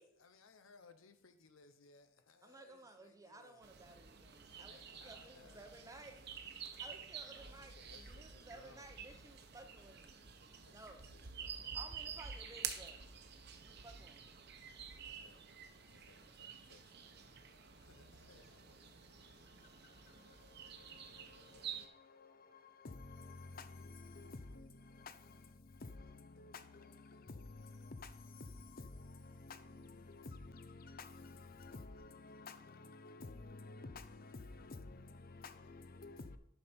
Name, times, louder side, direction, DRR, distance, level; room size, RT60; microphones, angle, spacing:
voice 1, 0.0-3.6 4.5-5.9 7.3-8.9 10.6-11.8 15.1-15.4 15.9-17.4 17.8-19.0, left 4 dB, 80° left, 0.9 m, -64 dB
voice 2, 2.4-10.2 10.7-11.1 11.7-13.0 13.6-14.4, right 2 dB, 15° right, 0.7 m, -57 dB
sound 1, 3.6-21.9, right 7 dB, 55° right, 0.9 m, -50 dB
voice 3, 16.4-16.8 17.0-36.4, left 3 dB, 45° left, 0.6 m, -53 dB
10.5 x 5.7 x 4.4 m
head